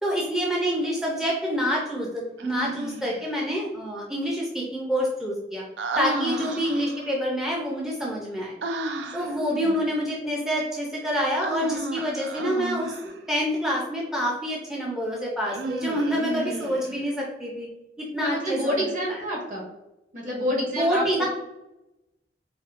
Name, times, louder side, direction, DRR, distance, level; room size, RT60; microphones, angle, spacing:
voice 1, 0.0-5.6 6.0-8.6 9.1-17.7 18.0-18.8 20.7-21.3, equal, 5° right, -3 dB, 0.5 m, -27 dB
Human voice, 2.4-3.3 5.8-7.1 8.6-9.4 11.4-13.2 15.4-17.0, right 2 dB, 80° right, 0.4 m, -32 dB
voice 2, 9.0-9.8 16.3-16.7 18.2-19.6 20.1-21.3, equal, 50° right, -3 dB, 1.4 m, -29 dB
4.3 x 2.7 x 2.5 m, 0.93 s
head